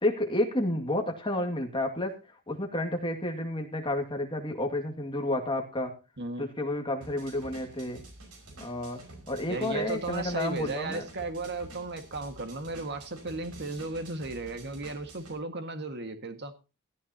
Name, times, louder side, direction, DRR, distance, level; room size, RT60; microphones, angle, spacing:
voice 1, 0.0-2.2 2.5-5.9 6.4-8.0 8.6-9.0 9.3-11.0, left 1 dB, 20° left, 3 dB, 2.2 m, -30 dB
sound 1, 7.0-15.4, right 2 dB, 85° right, 5.7 m, -49 dB
voice 2, 9.5-16.5, right 3 dB, 50° right, 7 dB, 1.8 m, -35 dB
17.0 x 14.0 x 2.9 m, 0.31 s
head